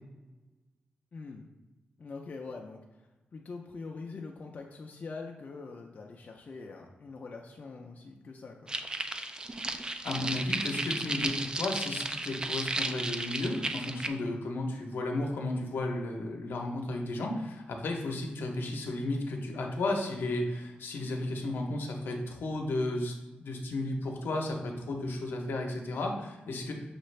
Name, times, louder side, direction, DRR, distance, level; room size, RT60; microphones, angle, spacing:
voice 1, 1.1-1.4 2.0-2.8 3.3-8.7 14.2-14.4, left 4 dB, 45° left, 0 dB, 0.4 m, -43 dB
sound 1, 8.7-14.1, right 2 dB, 25° right, 0.3 m, -34 dB
voice 2, 10.0-26.7, left 2 dB, 80° left, 2 dB, 0.7 m, -33 dB
6.4 x 2.5 x 3.2 m, 1.1 s
cardioid pair, 95°, 4 cm